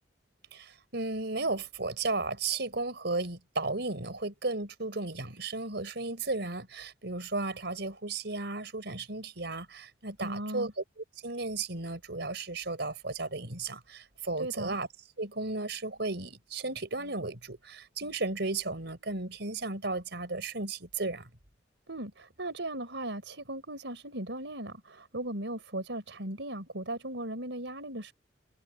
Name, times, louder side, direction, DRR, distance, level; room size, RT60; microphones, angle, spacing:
voice 1, 0.5-14.9 15.2-21.3, right 3 dB, 65° right, 5.1 m, -34 dB
voice 2, 10.2-10.7 14.4-14.8 21.9-28.1, right 1 dB, 85° right, 4.3 m, -37 dB
head